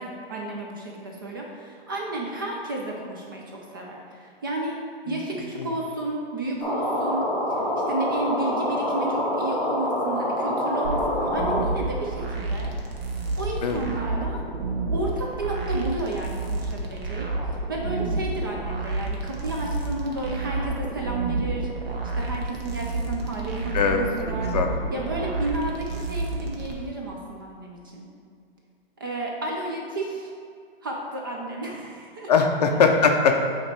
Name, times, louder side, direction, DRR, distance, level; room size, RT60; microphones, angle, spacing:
voice 1, 0.0-4.8 5.1-13.1 13.4-14.4 14.9-17.3 17.7-24.5 24.9-28.1 29.0-30.3 30.8-32.3, right 2 dB, 20° right, -1 dB, 0.4 m, -32 dB
sound 1, 6.6-11.6, left 1 dB, ahead, 0.7 m, -26 dB
sound 2, 10.8-26.7, right 2 dB, 75° right, 1.3 m, -30 dB
voice 2, 23.7-24.1 24.5-24.7 32.3-33.5, left 5 dB, 40° left, 4 dB, 0.5 m, -20 dB
8.7 x 3.0 x 4.2 m, 2.3 s
hypercardioid pair, 160°, 30 cm